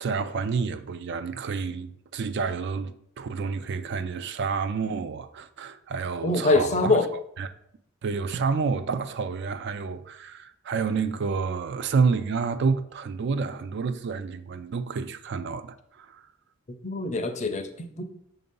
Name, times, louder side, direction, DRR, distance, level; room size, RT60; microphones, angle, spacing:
voice 1, 0.0-7.0 7.4-7.5 8.0-16.2, right 5 dB, 50° right, 0.3 m, -29 dB
voice 2, 6.2-7.1 16.8-18.0, left 2 dB, 35° left, 0.5 m, -24 dB
6.8 x 2.6 x 5.3 m
head